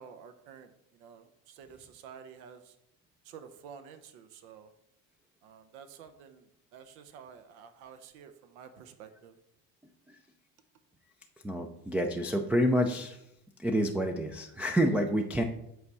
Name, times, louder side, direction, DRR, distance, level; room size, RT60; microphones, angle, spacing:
voice 1, 0.0-2.8 3.2-4.7 5.4-9.4, right 7 dB, 80° right, 8 dB, 0.9 m, -51 dB
voice 2, 11.4-13.2 13.6-15.4, equal, 5° right, 1 dB, 0.3 m, -28 dB
7.9 x 3.5 x 5.4 m, 0.79 s
supercardioid pair, 115°, 42 cm